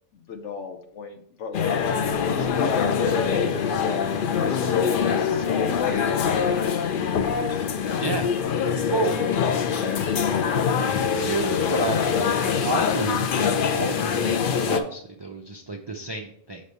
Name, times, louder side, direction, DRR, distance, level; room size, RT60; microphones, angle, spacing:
voice 1, 0.1-1.8 2.3-3.5 4.4-7.3 8.2-11.5, left 5 dB, 75° left, 6 dB, 1.1 m, -34 dB
sound 1, 1.5-14.8, left 6 dB, 55° left, 0.6 m, -24 dB
voice 2, 10.8-16.6, right 3 dB, 40° right, 2 dB, 0.4 m, -30 dB
6.5 x 3.2 x 5.3 m, 0.66 s
omnidirectional pair, 1.2 m